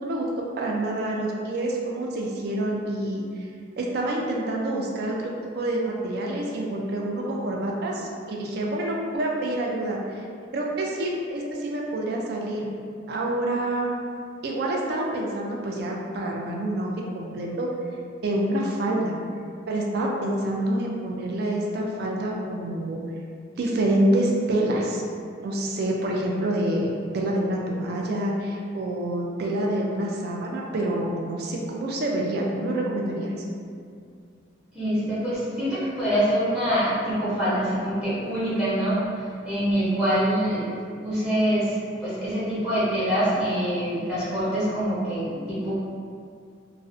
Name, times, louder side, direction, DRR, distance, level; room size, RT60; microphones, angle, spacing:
voice 1, 0.0-3.2 3.8-10.0 10.5-12.7 13.1-13.9 14.4-17.7 18.2-19.2 19.7-23.0 23.6-25.0 25.4-33.3, right 1 dB, 55° right, -2 dB, 0.3 m, -27 dB
voice 2, 34.7-40.7 41.0-45.9, equal, 5° right, -12 dB, 0.6 m, -25 dB
2.5 x 2.0 x 2.4 m, 2.3 s
head